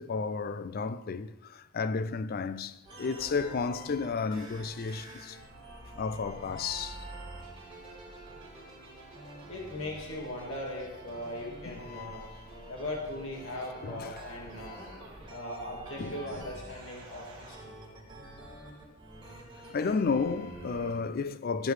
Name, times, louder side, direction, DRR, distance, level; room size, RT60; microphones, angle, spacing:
voice 1, 0.0-5.4 6.0-7.0 11.6-12.4 13.8-14.2 14.6-14.9 16.0-16.4 19.7-21.7, left 4 dB, 45° left, 0.4 m, -33 dB
sound 1, 2.8-20.9, right 2 dB, 25° right, 4.1 m, -47 dB
voice 2, 9.5-12.2 12.7-14.8 15.3-17.6, left 1 dB, 65° left, 1.9 m, -39 dB
15.5 x 8.3 x 3.3 m
head